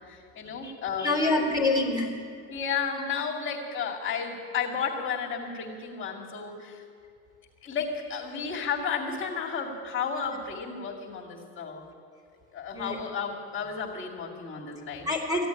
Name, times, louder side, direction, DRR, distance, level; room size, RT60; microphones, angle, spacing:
voice 1, 0.0-1.2 1.4-1.5 2.5-6.8 7.6-11.8 12.5-15.1, left 6 dB, 40° left, -3 dB, 2.5 m, -33 dB
voice 2, 1.0-2.1 12.7-13.0 15.0-15.5, left 2 dB, 10° right, -1 dB, 3.4 m, -26 dB
15.5 x 8.5 x 9.9 m, 2.2 s
supercardioid pair, 110°, 31 cm